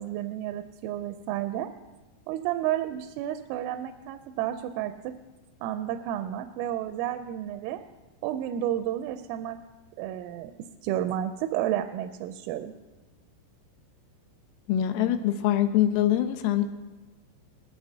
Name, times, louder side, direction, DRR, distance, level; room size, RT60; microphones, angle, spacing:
voice 1, 0.0-1.7 2.3-5.1 5.6-7.8 8.2-9.6 10.0-10.5 10.8-12.7, right 12 dB, 85° right, 8 dB, 3.0 m, -31 dB
voice 2, 14.7-16.6, left 11 dB, 80° left, 8 dB, 3.1 m, -24 dB
20.0 x 14.0 x 2.7 m, 1.2 s
omnidirectional pair, 5.7 m